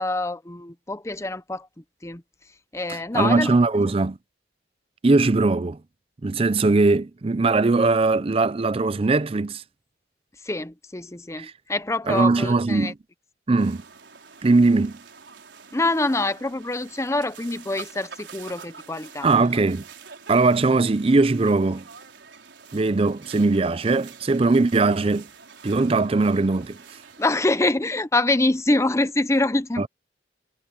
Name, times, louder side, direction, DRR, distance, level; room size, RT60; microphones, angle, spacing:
voice 1, 0.0-2.2 2.7-3.6 10.4-12.9 15.7-19.4 27.2-29.9, left 2 dB, 15° left, 0.8 m, -25 dB
voice 2, 3.1-4.2 5.0-5.8 6.2-9.6 11.4-11.5 12.1-12.9 13.5-13.8 14.4-15.0 19.2-19.8 20.3-21.8 22.7-25.3 25.6-26.8 29.8-29.9, right 3 dB, 30° right, 0.5 m, -20 dB
sound 1, 13.6-27.4, right 6 dB, 75° right, 4.7 m, -46 dB
head